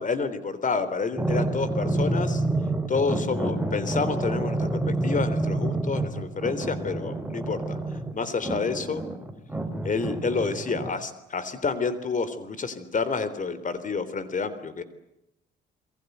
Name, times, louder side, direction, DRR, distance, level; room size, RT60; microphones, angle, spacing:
voice 1, 0.0-2.4 2.9-7.8 8.1-9.0 9.8-14.8, left 4 dB, 40° left, 14 dB, 3.6 m, -29 dB
sound 1, 1.2-10.9, right 2 dB, 10° right, 3.1 m, -28 dB
29.0 x 22.5 x 8.1 m, 0.85 s
cardioid pair, 90°, 20 cm